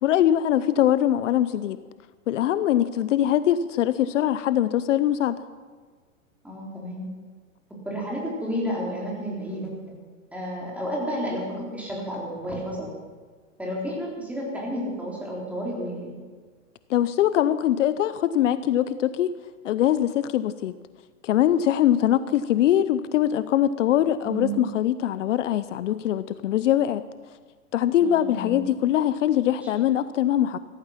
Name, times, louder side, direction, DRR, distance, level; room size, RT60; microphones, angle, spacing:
voice 1, 0.0-1.8 2.3-5.4 16.9-19.4 19.6-20.8 21.2-27.0 27.7-30.6, left 11 dB, 65° left, 14 dB, 0.7 m, -22 dB
voice 2, 6.4-7.0 7.8-9.7 10.3-12.9 13.6-16.1 24.2-24.6 28.0-28.6 29.6-29.7, equal, 5° right, -3 dB, 3.8 m, -31 dB
15.5 x 14.5 x 5.8 m, 1.5 s
hypercardioid pair, 145°, 40 cm